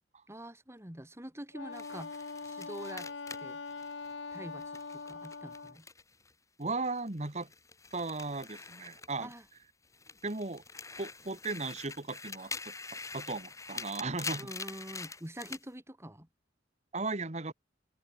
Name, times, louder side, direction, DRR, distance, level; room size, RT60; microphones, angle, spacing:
voice 1, 0.3-3.1 3.4-3.6 4.3-5.9 9.2-9.5 14.4-16.3, right 1 dB, 15° right, 3.9 m, -46 dB
Wind instrument woodwind instrument, 1.5-5.8, left 4 dB, 75° left, 1.2 m, -42 dB
sound 1, 1.7-6.3 6.6-9.6 9.9-15.7, left 4 dB, 15° left, 1.8 m, -45 dB
voice 2, 6.6-7.5 7.9-9.3 10.2-10.6 11.0-12.7 13.1-14.5 16.9-17.5, right 3 dB, 35° right, 1.7 m, -36 dB
head